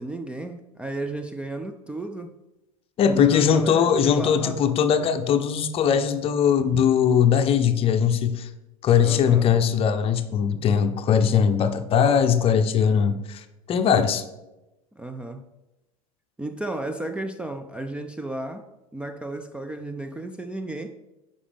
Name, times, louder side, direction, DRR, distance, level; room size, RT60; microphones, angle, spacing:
voice 1, 0.0-2.3 3.1-4.6 9.0-9.5 15.0-15.4 16.4-20.9, right 2 dB, 5° right, 6 dB, 0.4 m, -33 dB
voice 2, 3.0-8.5 8.8-14.2, left 7 dB, 30° left, 9 dB, 0.7 m, -20 dB
9.8 x 5.2 x 3.4 m, 0.99 s
figure-of-eight pair, 80°, 18 cm